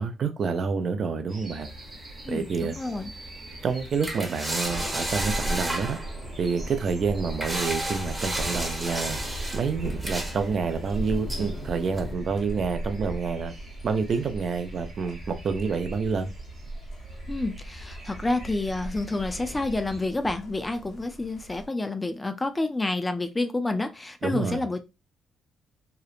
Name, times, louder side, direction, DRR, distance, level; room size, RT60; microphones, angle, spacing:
voice 1, 0.0-1.7 2.3-2.7 3.6-6.0 6.4-9.2 9.5-13.5 13.8-16.3 24.2-24.6, right 5 dB, 50° right, 0.4 m, -28 dB
sound 1, 1.3-20.0, right 2 dB, 35° right, 1.1 m, -45 dB
sound 2, 1.6-12.1, right 1 dB, 15° right, 0.8 m, -34 dB
voice 2, 2.2-3.1 17.3-24.8, left 2 dB, 15° left, 0.4 m, -29 dB
Thunder, 4.6-21.7, right 1 dB, 70° left, 0.8 m, -37 dB
2.9 x 2.0 x 2.4 m
cardioid pair, 90°, 0 cm